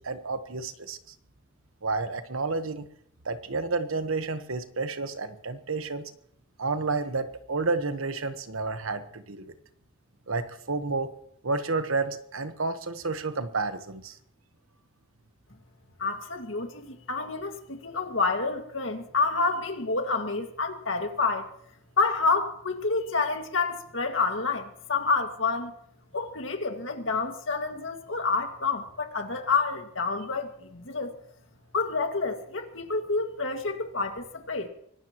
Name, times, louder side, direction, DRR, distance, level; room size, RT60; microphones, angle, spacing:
voice 1, 0.0-1.0 1.8-2.9 3.2-6.1 6.6-9.5 10.3-11.1 11.4-14.2, right 3 dB, 80° right, 9 dB, 1.3 m, -30 dB
voice 2, 16.0-21.5 22.0-25.7 26.1-31.1 31.7-34.7, left 4 dB, 65° left, 4 dB, 2.1 m, -28 dB
24.5 x 18.5 x 3.1 m, 0.69 s
head